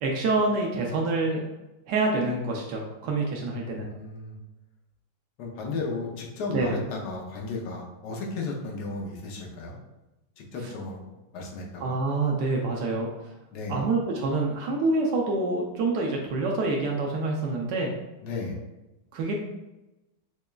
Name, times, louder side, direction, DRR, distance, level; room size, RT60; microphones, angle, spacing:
voice 1, 0.0-1.4 1.9-3.9 6.5-6.8 10.6-10.7 11.8-13.1 13.7-17.9 19.1-19.3, right 3 dB, 90° right, -1 dB, 0.9 m, -26 dB
voice 2, 3.9-4.4 5.4-9.8 10.4-11.0 11.3-12.0 13.5-13.8 18.2-18.6, left 3 dB, 70° left, -1 dB, 0.9 m, -34 dB
6.0 x 2.2 x 2.3 m, 0.99 s
omnidirectional pair, 2.4 m